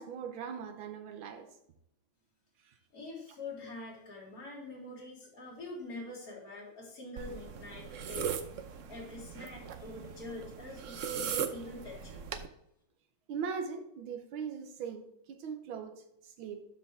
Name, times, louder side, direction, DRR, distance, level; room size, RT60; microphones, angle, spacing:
voice 1, 0.0-1.5 2.6-2.7 13.3-16.6, right 6 dB, 80° right, 7 dB, 1.7 m, -40 dB
voice 2, 2.9-8.4 8.9-12.2, left 2 dB, 45° left, -5 dB, 3.6 m, -45 dB
sound 1, 7.2-12.5, right 7 dB, 60° right, 0.8 m, -39 dB
12.5 x 5.3 x 3.4 m, 0.78 s
omnidirectional pair, 2.2 m